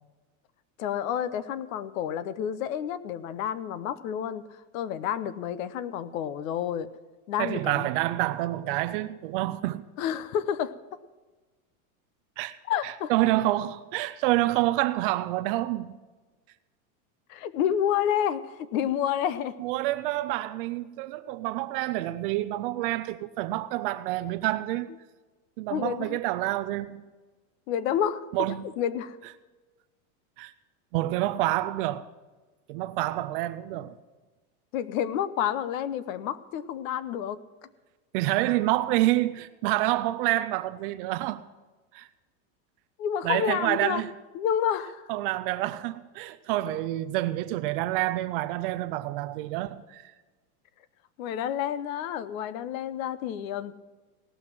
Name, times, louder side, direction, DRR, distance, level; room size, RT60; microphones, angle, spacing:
voice 1, 0.8-6.9 7.3-7.9 10.0-11.0 12.7-13.1 17.3-19.6 25.7-26.2 27.7-28.3 28.8-29.2 34.7-37.4 43.0-44.0 44.3-45.1 51.2-53.7, left 9 dB, 65° left, 0.9 m, -29 dB
voice 2, 7.4-9.8 12.4-12.6 12.8-16.0 19.6-24.9 25.6-27.1 28.3-28.6 30.4-30.5 30.9-32.1 32.7-34.0 38.1-41.5 41.9-42.1 43.2-44.1 45.1-50.1, right 16 dB, 40° right, 0.4 m, -28 dB
18.0 x 6.1 x 7.5 m
supercardioid pair, 150°, 45 cm